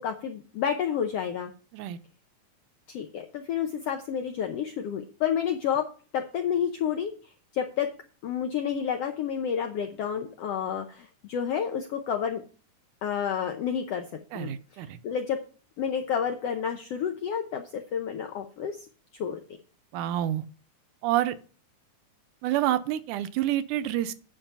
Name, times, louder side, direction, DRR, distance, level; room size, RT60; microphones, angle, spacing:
voice 1, 0.0-1.5 2.9-5.8 6.1-7.9 8.2-12.4 13.0-14.0 14.3-15.4 15.8-18.8 19.2-19.4, left 8 dB, 80° left, 5 dB, 1.4 m, -30 dB
voice 2, 14.3-15.0 19.9-20.4 21.0-21.4 22.4-24.1, right 13 dB, 80° right, 12 dB, 2.0 m, -28 dB
8.8 x 5.7 x 5.4 m, 0.39 s
omnidirectional pair, 3.7 m